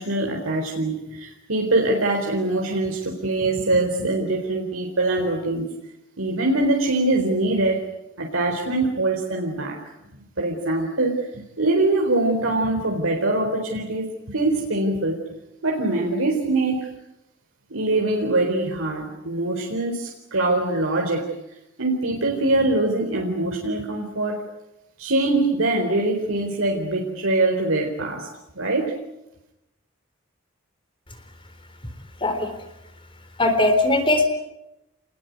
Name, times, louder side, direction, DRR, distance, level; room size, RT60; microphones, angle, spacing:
voice 1, 0.0-5.7 6.2-7.8 8.2-9.8 10.4-15.2 15.6-16.9 17.7-21.3 21.8-24.4 25.0-28.3 28.5-28.9, right 2 dB, 85° right, 1 dB, 4.3 m, -23 dB
voice 2, 33.4-34.3, left 2 dB, 25° left, 7 dB, 3.9 m, -19 dB
28.0 x 21.0 x 9.5 m, 0.91 s
head